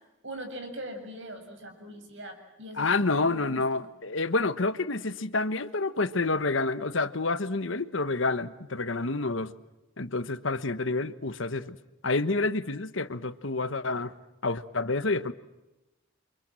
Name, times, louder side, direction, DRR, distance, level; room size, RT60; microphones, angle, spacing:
voice 1, 0.2-2.9 3.2-3.6, equal, 65° right, 7.1 m, -41 dB
voice 2, 2.8-9.5 10.0-11.8 12.0-14.1 14.4-15.3, left 3 dB, 75° left, 1.2 m, -28 dB
29.5 x 25.5 x 7.6 m
head